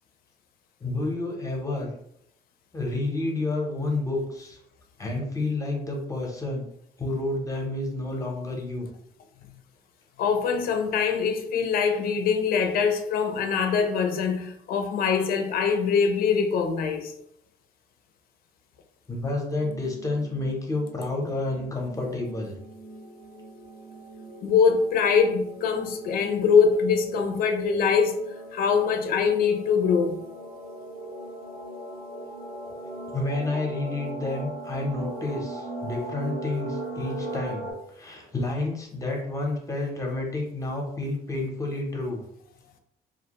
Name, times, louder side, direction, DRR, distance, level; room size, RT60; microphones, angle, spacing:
voice 1, 0.8-1.9 2.7-4.6 5.0-6.7 7.0-8.9 19.1-22.5 32.8-42.2, left 2 dB, 20° left, 0.7 m, -30 dB
voice 2, 10.2-17.1 24.4-28.2 28.5-30.2, left 6 dB, 60° left, 0.4 m, -23 dB
sound 1, 19.4-37.7, right 2 dB, 80° right, 1.1 m, -39 dB
2.4 x 2.1 x 2.9 m
cardioid pair, 110°, 17 cm